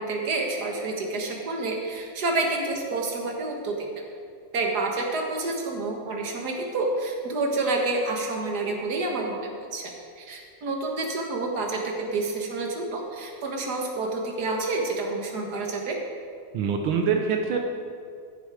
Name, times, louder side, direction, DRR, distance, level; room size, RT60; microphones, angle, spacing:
voice 1, 0.0-3.9 4.5-16.0, right 2 dB, 55° right, 1 dB, 2.0 m, -29 dB
voice 2, 16.5-17.6, right 6 dB, 85° right, 3 dB, 1.6 m, -24 dB
14.5 x 8.0 x 4.9 m, 2.2 s
omnidirectional pair, 2.1 m